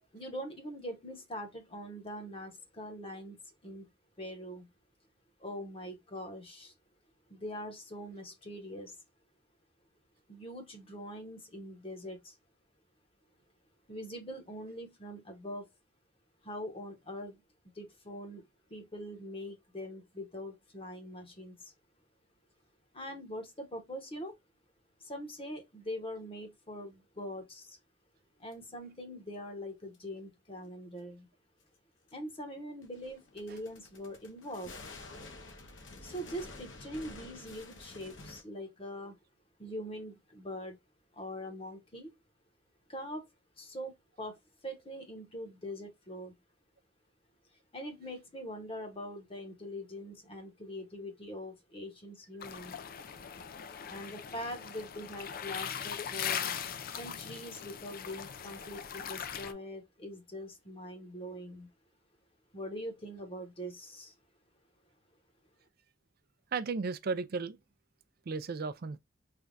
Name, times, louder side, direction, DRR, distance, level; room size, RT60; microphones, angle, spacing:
voice 1, 0.1-3.9 4.2-4.7 5.4-6.7 7.3-9.0 10.3-12.4 13.9-15.7 16.4-17.4 17.7-18.4 18.7-21.7 22.9-24.4 25.0-27.8 28.4-31.3 32.1-34.8 36.0-39.2 39.6-40.8 41.1-42.1 42.9-43.3 43.6-44.4 44.6-46.3 47.7-52.8 53.9-56.5 56.9-61.7 62.5-64.1, equal, 30° left, 1.0 m, -43 dB
sound 1, 28.5-28.6 29.9-30.0 32.1-32.2 32.8-38.4, left 2 dB, 80° left, 1.0 m, -50 dB
sound 2, 52.4-59.5, left 8 dB, 50° left, 0.4 m, -40 dB
voice 2, 66.5-67.6 68.3-69.0, right 4 dB, 55° right, 0.4 m, -34 dB
3.4 x 2.3 x 3.9 m
head